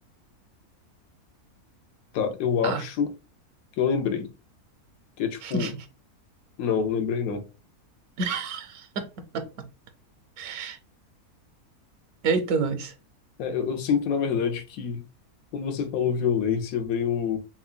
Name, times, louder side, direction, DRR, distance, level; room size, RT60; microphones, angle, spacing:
voice 1, 2.1-3.1 3.8-4.3 5.2-5.7 6.6-7.4 13.4-15.0 15.5-17.4, left 7 dB, 70° left, 1.0 m, -26 dB
voice 2, 8.2-9.1 9.3-9.7 10.4-10.8 12.2-12.9, right 4 dB, 80° right, 1.1 m, -28 dB
5.7 x 2.2 x 2.2 m
omnidirectional pair, 1.6 m